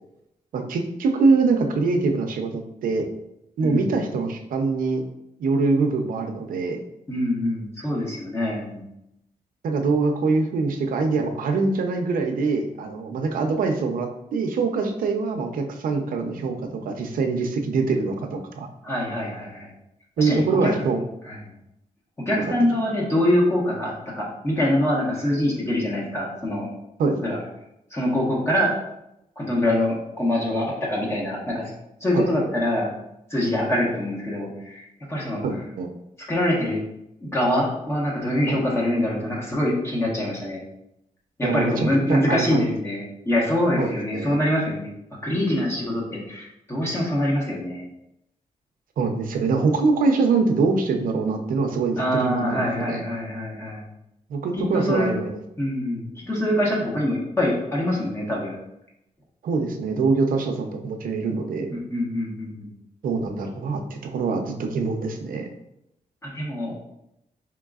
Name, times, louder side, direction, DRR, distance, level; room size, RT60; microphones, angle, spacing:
voice 1, 0.5-3.1 3.6-5.0 5.4-6.8 9.6-18.7 20.2-21.0 22.4-22.5 27.0-27.2 32.1-32.2 35.4-35.9 38.5-38.6 41.4-42.7 43.8-44.4 49.0-53.0 54.3-55.4 59.4-61.8 63.0-65.5, right 4 dB, 85° right, 4 dB, 0.6 m, -24 dB
voice 2, 3.6-4.0 7.1-8.8 18.8-19.7 20.2-20.7 21.2-21.5 22.3-26.7 27.2-27.4 27.9-28.7 29.4-31.7 32.0-32.9 33.3-35.4 36.3-36.8 37.2-40.6 41.4-44.9 45.2-47.9 52.0-53.8 54.5-55.1 55.6-58.5 61.7-62.7 66.2-66.7, left 1 dB, 20° left, -5 dB, 1.1 m, -24 dB
4.6 x 3.7 x 2.4 m, 0.83 s
wide cardioid pair, 135°, 14 cm